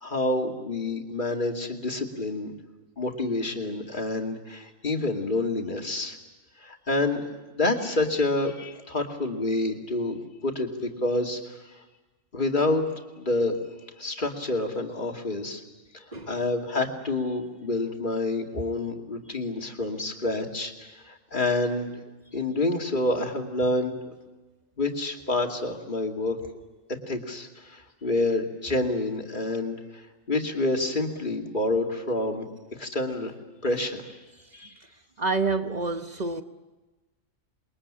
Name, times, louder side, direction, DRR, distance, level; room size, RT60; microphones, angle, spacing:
voice 1, 0.0-2.5 3.0-6.2 6.6-7.3 7.6-11.6 12.3-13.6 14.0-15.6 16.3-21.9 22.3-24.1 24.8-26.4 27.1-32.5 32.8-33.3 33.6-34.2 34.5-34.7, left 2 dB, 40° left, 2.6 m, -28 dB
voice 2, 35.2-36.4, right 3 dB, 35° right, 1.0 m, -28 dB
28.0 x 22.0 x 8.7 m
omnidirectional pair, 1.4 m